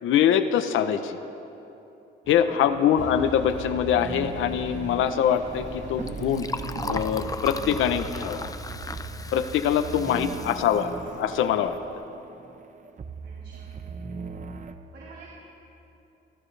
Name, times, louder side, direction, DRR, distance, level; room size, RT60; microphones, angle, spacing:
voice 1, 0.0-1.2 2.3-6.5 6.9-8.5 9.3-11.8, left 9 dB, 80° left, 9 dB, 0.8 m, -24 dB
sound 1, 2.2-14.7, right 5 dB, 40° right, 1.0 m, -39 dB
voice 2, 2.4-3.1 10.0-10.9 13.2-13.7 14.9-15.3, right 3 dB, 75° right, -7 dB, 4.1 m, -47 dB
sound 2, 3.0-9.4, left 4 dB, 60° left, 3.1 m, -42 dB
Liquid, 5.2-11.9, left 3 dB, 20° left, 0.6 m, -38 dB
30.0 x 14.0 x 3.3 m, 2.9 s
cardioid pair, 90°, 20 cm